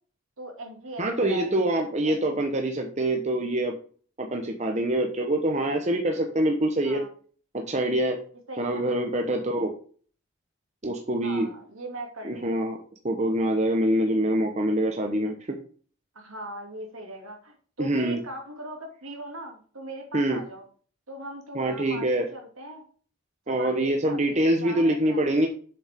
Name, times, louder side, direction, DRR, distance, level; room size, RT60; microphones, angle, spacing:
voice 1, 0.4-1.8 2.0-2.1 6.8-7.1 8.5-8.8 11.2-12.4 16.1-20.6 21.1-22.8 23.5-25.4, right 1 dB, 75° right, 2 dB, 2.5 m, -40 dB
voice 2, 1.0-3.7 4.2-7.0 7.5-8.2 8.6-9.7 10.8-11.5 12.2-12.8 13.0-15.6 17.8-18.2 20.1-20.4 21.5-22.3 23.5-25.5, right 1 dB, 30° right, 2 dB, 1.0 m, -25 dB
7.5 x 6.9 x 3.6 m, 0.42 s
head